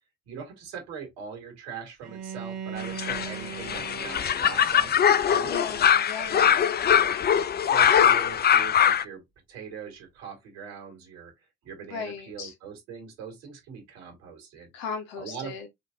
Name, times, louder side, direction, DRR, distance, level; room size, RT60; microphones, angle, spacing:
voice 1, 0.3-5.0 5.3-5.5 6.4-7.2 7.6-9.2 9.5-11.3 11.6-14.7 15.2-15.7, right 6 dB, 75° right, 2.5 m, -41 dB
Bowed string instrument, 2.0-7.0, right 7 dB, 55° right, 1.3 m, -41 dB
sound 1, 2.8-9.0, left 9 dB, 30° left, 0.5 m, -22 dB
voice 2, 5.4-6.7 11.9-12.5 14.7-15.7, left 5 dB, 75° left, 1.4 m, -37 dB
5.6 x 3.4 x 2.6 m
hypercardioid pair, 50°, 32 cm